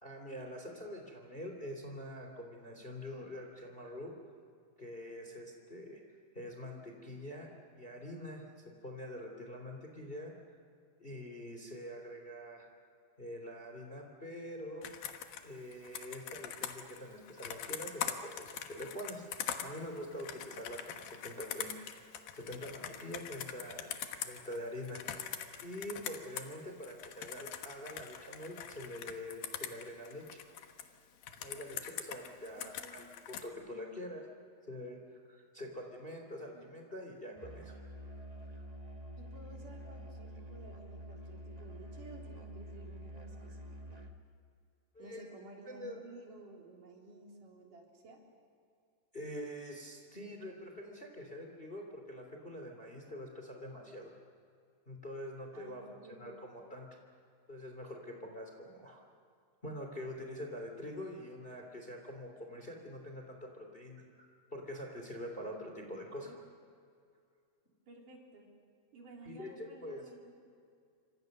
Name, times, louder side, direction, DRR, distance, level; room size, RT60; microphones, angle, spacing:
voice 1, 0.0-4.1 4.8-6.0 6.3-7.5 7.7-8.5 8.8-10.3 11.0-12.7 13.2-14.9 15.4-19.2 19.6-23.9 24.2-25.2 25.6-30.4 31.4-34.2 34.7-35.0 35.2-37.7 44.9-45.3 45.7-46.0 49.1-54.1 54.9-56.9 57.5-59.0 59.6-66.3 69.2-70.0, left 1 dB, 15° left, 2 dB, 2.9 m, -45 dB
Computer keyboard, 14.8-26.5 26.8-30.8 31.2-33.5, left 9 dB, 90° left, 3.2 m, -43 dB
voice 2, 32.5-33.2 36.5-36.6 39.2-43.6 45.0-48.2 55.5-56.4 66.2-66.4 67.9-68.5 68.9-70.4, right 2 dB, 65° right, -1 dB, 5.2 m, -54 dB
Musical instrument, 37.4-44.3, equal, 40° right, 0.5 m, -48 dB
28.5 x 25.5 x 6.7 m, 2.3 s
omnidirectional pair, 4.0 m